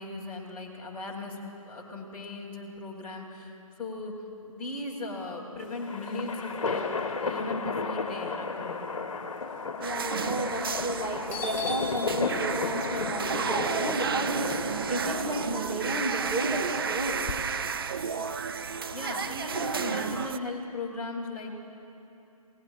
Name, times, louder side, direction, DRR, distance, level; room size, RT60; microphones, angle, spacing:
voice 1, 0.0-1.4 1.6-3.5 3.8-4.2 4.5-6.9 7.1-8.8 18.9-21.5, left 2 dB, 5° left, -7 dB, 1.4 m, -37 dB
sound 1, 5.6-16.1, left 4 dB, 60° left, 1.1 m, -34 dB
voice 2, 9.7-17.6, right 1 dB, 15° right, -1 dB, 1.4 m, -33 dB
sound 2, 9.8-20.4, right 6 dB, 40° right, 0.4 m, -32 dB
Doorbell, 10.9-11.0 11.3-15.4 15.8-17.3, left 4 dB, 25° left, 1.1 m, -38 dB
26.0 x 18.5 x 2.5 m, 2.8 s
figure-of-eight pair, 155°, 19 cm